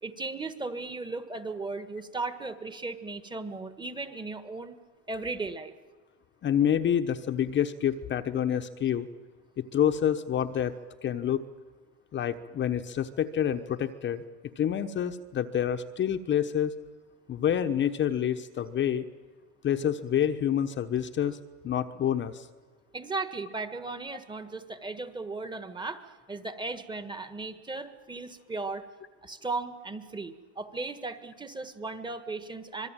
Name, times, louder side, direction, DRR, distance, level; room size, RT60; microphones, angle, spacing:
voice 1, 0.0-4.8 5.1-5.7 22.9-26.0 26.3-28.9 29.2-32.9, right 3 dB, 10° right, 10 dB, 1.6 m, -36 dB
voice 2, 6.4-9.1 9.6-10.7 11.0-11.4 12.1-14.2 14.6-16.7 17.3-19.1 19.6-21.4 21.6-22.5, left 9 dB, 30° left, 7 dB, 1.1 m, -27 dB
25.5 x 22.0 x 9.0 m, 1.4 s
supercardioid pair, 120°, 37 cm